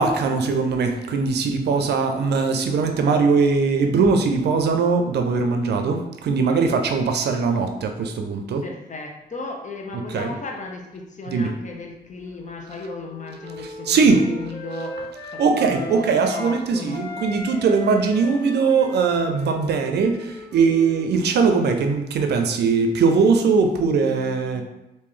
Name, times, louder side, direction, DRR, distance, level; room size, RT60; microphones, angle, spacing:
voice 1, 0.0-8.6 9.9-10.3 11.3-11.5 13.6-14.3 15.4-24.6, right 4 dB, 90° right, 5 dB, 0.5 m, -20 dB
voice 2, 8.6-15.0 15.3-17.0 23.5-23.6 23.9-24.6, left 3 dB, 45° left, 1 dB, 0.8 m, -35 dB
Wind instrument woodwind instrument, 12.2-16.6 16.9-21.4, equal, 15° left, 1.1 m, -38 dB
3.1 x 2.7 x 3.7 m, 0.95 s
cardioid pair, 65°, 17 cm